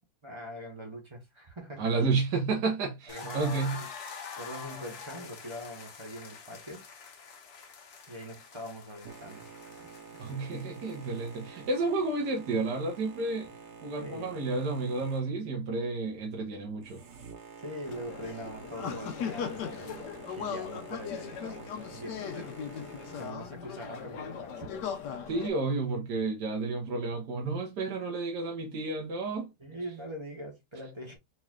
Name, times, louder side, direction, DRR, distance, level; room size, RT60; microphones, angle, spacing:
voice 1, 0.2-2.0 3.1-3.9 4.4-6.8 8.1-9.7 14.0-14.4 17.6-22.7 23.2-24.9 29.6-31.2, equal, 20° right, 1.1 m, -43 dB
voice 2, 1.8-3.8 10.2-13.5 13.8-17.0 25.3-29.5, right 3 dB, 75° right, 1.7 m, -31 dB
sound 1, 3.1-11.8, left 5 dB, 70° left, 1.5 m, -46 dB
Boat Water vehicle, 9.0-23.3, right 5 dB, 50° right, 0.9 m, -49 dB
sound 2, 17.8-25.5, left 7 dB, 85° left, 1.3 m, -38 dB
4.4 x 3.2 x 2.3 m
omnidirectional pair, 1.8 m